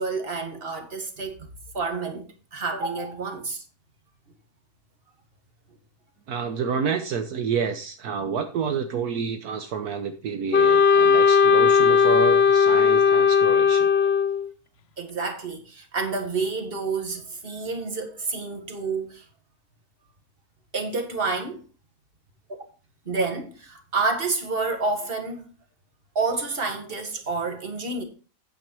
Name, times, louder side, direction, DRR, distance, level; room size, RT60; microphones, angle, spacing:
voice 1, 0.0-1.4 1.7-2.2 2.5-3.6 15.0-19.3 20.7-21.6 23.1-25.5 26.2-28.0, right 4 dB, 40° right, 2.0 m, -29 dB
voice 2, 6.3-13.9, right 6 dB, 75° right, 1.4 m, -29 dB
Wind instrument woodwind instrument, 10.5-14.5, left 6 dB, 55° left, 0.8 m, -17 dB
9.1 x 7.9 x 4.5 m
omnidirectional pair, 1.6 m